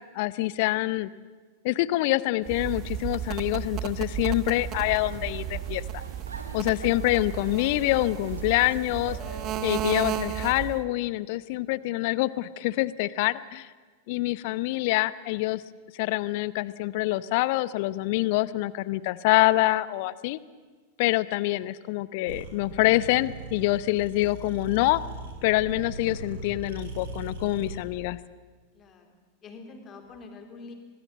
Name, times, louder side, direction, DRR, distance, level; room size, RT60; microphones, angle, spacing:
voice 1, 0.1-1.1 1.6-5.8 6.5-9.2 9.6-13.7 14.1-15.6 16.0-20.4 21.0-25.0 25.4-28.2, left 18 dB, 50° left, 18 dB, 0.8 m, -26 dB
sound 1, 2.5-10.8, right 11 dB, 35° right, 1.2 m, -33 dB
sound 2, 4.7-10.2, right 3 dB, 75° right, 2.0 m, -46 dB
sound 3, 22.3-27.8, right 3 dB, 60° right, 4.2 m, -39 dB
voice 2, 28.7-30.7, left 3 dB, 30° left, 5 dB, 3.8 m, -46 dB
25.0 x 19.0 x 7.5 m, 1.4 s
figure-of-eight pair, 90°, 0 cm